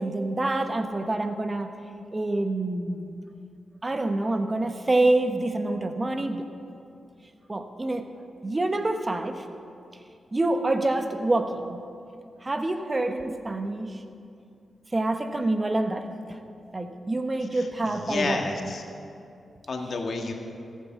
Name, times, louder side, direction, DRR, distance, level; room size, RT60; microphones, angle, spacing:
voice 1, 0.0-1.7 2.1-3.2 3.8-6.4 7.5-8.0 8.4-9.4 10.3-11.8 12.4-14.0 14.9-16.1 16.7-18.4, right 2 dB, 30° right, 7 dB, 1.2 m, -26 dB
voice 2, 18.0-18.8 19.7-20.3, left 3 dB, 60° left, 3 dB, 1.7 m, -30 dB
14.5 x 8.6 x 7.1 m, 2.5 s
supercardioid pair, 45°, 0 cm